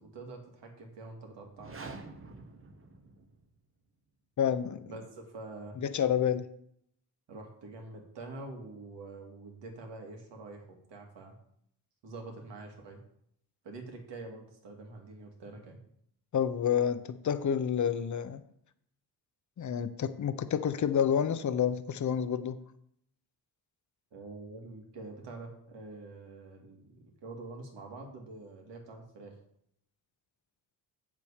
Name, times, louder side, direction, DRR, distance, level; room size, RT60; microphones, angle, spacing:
voice 1, 0.0-1.8 4.9-5.8 7.3-11.3 12.0-13.0 13.6-15.8 24.1-29.4, right 3 dB, 80° right, 1 dB, 2.6 m, -46 dB
sound 1, 1.5-3.6, right 3 dB, 30° right, 1.1 m, -47 dB
voice 2, 4.4-4.9 5.8-6.4 16.3-18.4 19.6-22.6, left 8 dB, 45° left, 12 dB, 0.7 m, -29 dB
8.1 x 7.2 x 5.0 m, 0.71 s
cardioid pair, 110°, 42 cm